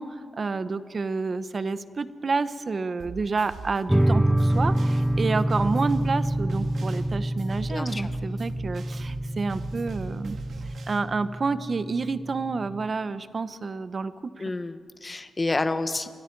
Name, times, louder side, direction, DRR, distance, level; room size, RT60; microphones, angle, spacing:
voice 1, 0.0-10.4 10.9-14.4, right 4 dB, 35° right, 13 dB, 0.9 m, -29 dB
sound 1, 3.0-11.0, right 4 dB, 65° right, 1.9 m, -41 dB
sound 2, 3.9-12.9, right 1 dB, 5° right, 0.7 m, -27 dB
voice 2, 7.7-8.1 14.4-16.1, left 2 dB, 25° left, 10 dB, 1.0 m, -29 dB
30.0 x 24.5 x 4.7 m, 2.1 s
wide cardioid pair, 135°, 0 cm